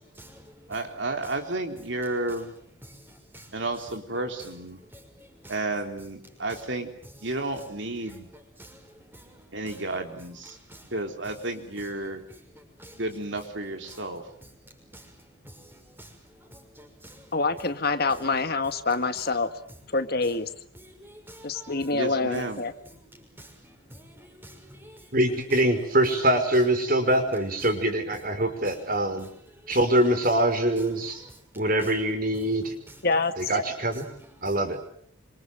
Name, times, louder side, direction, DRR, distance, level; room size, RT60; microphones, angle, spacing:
voice 1, 0.0-1.0 2.8-3.5 4.9-5.6 6.5-6.6 8.0-9.9 10.7-10.9 11.8-13.0 13.9-14.1 14.4-14.5 14.9-17.3 20.7-22.0 22.8-25.1 28.4-28.7 29.2-29.3 29.6-29.8 31.2-31.9 32.4-33.0 33.9-34.6, equal, 10° right, 6.2 m, -50 dB
voice 2, 0.7-2.5 3.5-4.8 5.5-6.9 7.2-8.3 9.5-10.6 10.9-12.2 13.0-14.2 21.9-22.6, right 2 dB, 60° right, 3.6 m, -32 dB
voice 3, 17.3-19.5 19.9-20.5 21.4-22.7 33.0-33.3, left 3 dB, 50° left, 1.8 m, -26 dB
voice 4, 25.1-29.3 29.7-31.2 31.6-32.7 33.4-34.1 34.4-34.8, right 1 dB, 45° right, 5.4 m, -24 dB
28.0 x 26.0 x 7.8 m
head